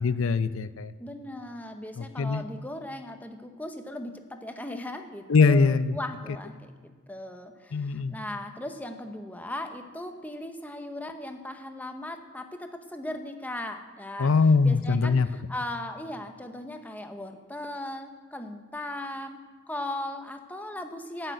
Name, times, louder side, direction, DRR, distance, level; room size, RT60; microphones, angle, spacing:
voice 1, 0.0-0.9 2.0-2.4 5.3-6.0 7.7-8.2 14.2-15.3, left 4 dB, 65° left, 14 dB, 0.5 m, -22 dB
voice 2, 1.0-14.3 14.6-19.4 19.7-21.3, left 1 dB, 10° left, 6 dB, 0.8 m, -38 dB
12.0 x 6.6 x 9.1 m, 1.5 s
head